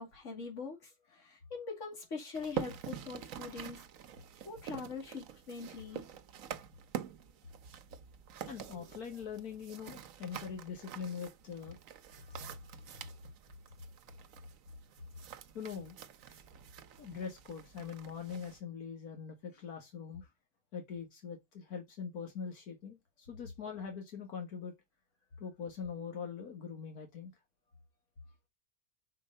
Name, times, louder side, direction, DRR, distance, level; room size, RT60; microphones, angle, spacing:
voice 1, 0.0-3.8 4.5-6.0, left 4 dB, 55° left, 2.6 m, -43 dB
sound 1, 2.3-18.6, right 9 dB, 65° right, 1.1 m, -46 dB
voice 2, 8.5-11.8 15.5-16.0 16.3-16.4 17.0-20.3 20.7-24.7 25.4-27.3, left 6 dB, 80° left, 2.0 m, -43 dB
5.6 x 4.7 x 5.3 m
omnidirectional pair, 1.6 m